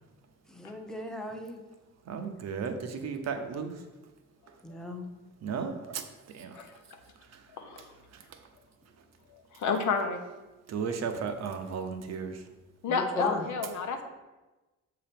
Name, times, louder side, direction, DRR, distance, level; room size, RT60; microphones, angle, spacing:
voice 1, 0.5-1.6 4.6-5.1 12.9-13.5, left 1 dB, ahead, 4 dB, 0.8 m, -36 dB
voice 2, 2.1-3.7 5.4-6.0 6.3-6.6 10.7-12.4, right 6 dB, 60° right, 6 dB, 0.7 m, -34 dB
voice 3, 9.6-10.2 12.8-14.0, left 5 dB, 70° left, 5 dB, 0.9 m, -29 dB
6.7 x 2.9 x 5.1 m, 1.1 s
cardioid pair, 90°, 30 cm